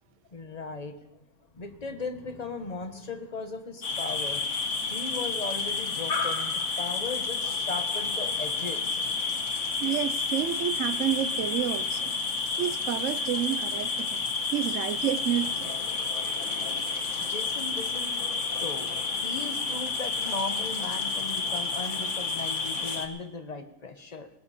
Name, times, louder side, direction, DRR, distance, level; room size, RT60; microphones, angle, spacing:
voice 1, 0.3-1.2 1.5-4.4 4.9-9.0 17.2-18.2 18.6-24.3, left 3 dB, 30° left, 8 dB, 1.2 m, -37 dB
sound 1, 3.8-23.1, left 4 dB, 55° left, 1.6 m, -30 dB
voice 2, 9.8-12.2 12.6-14.2 14.5-15.7, right 11 dB, 60° right, 14 dB, 1.0 m, -30 dB
17.5 x 17.5 x 4.3 m, 0.97 s
omnidirectional pair, 1.5 m